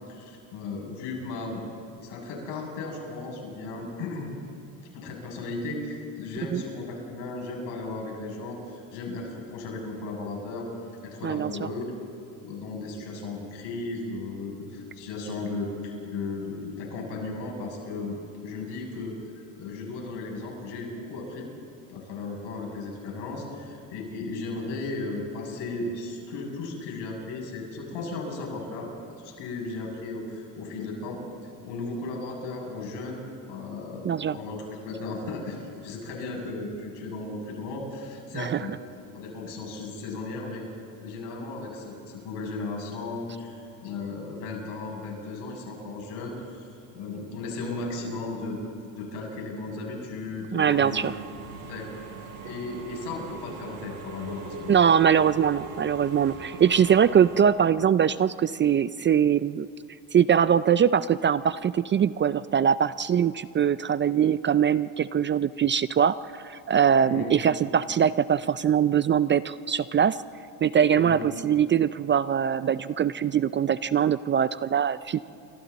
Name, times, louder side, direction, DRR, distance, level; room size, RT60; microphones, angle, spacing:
voice 1, 0.1-4.3 4.9-10.7 11.0-11.9 12.4-21.5 21.9-28.9 29.2-31.2 31.6-38.8 39.1-40.7 41.0-46.7 46.9-48.6 48.9-51.1 51.7-51.9 52.4-54.7 67.0-67.4 71.0-71.2, left 3 dB, 75° left, -1 dB, 7.5 m, -35 dB
voice 2, 11.2-11.7 34.0-34.4 38.4-38.6 50.5-51.1 54.7-59.7 60.1-70.2 70.6-75.2, right 8 dB, 30° right, 15 dB, 0.4 m, -22 dB
Engine / Mechanisms, 50.6-57.5, right 4 dB, 65° right, 7.6 m, -41 dB
29.5 x 26.0 x 4.1 m, 2.7 s
supercardioid pair, 90°, 42 cm